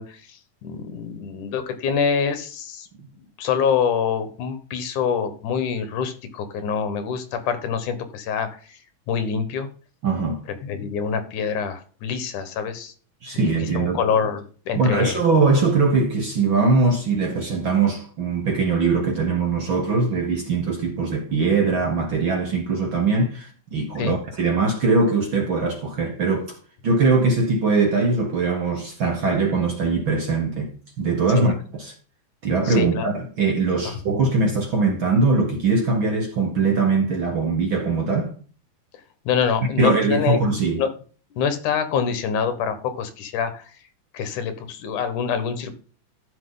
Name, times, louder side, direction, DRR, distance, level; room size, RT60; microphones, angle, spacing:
voice 1, 0.0-2.9 3.4-8.8 9.1-9.7 10.6-12.9 13.3-15.2 24.0-24.1 31.3-31.5 32.6-33.1 33.9-34.0 39.3-40.9 41.4-43.7 44.1-45.7, left 6 dB, 75° left, 2.8 m, -26 dB
voice 2, 10.0-10.4 13.2-14.0 14.7-26.6 26.8-31.9 32.4-38.3 39.8-40.8, right 3 dB, 50° right, 1.6 m, -21 dB
13.5 x 5.8 x 3.9 m
omnidirectional pair, 3.7 m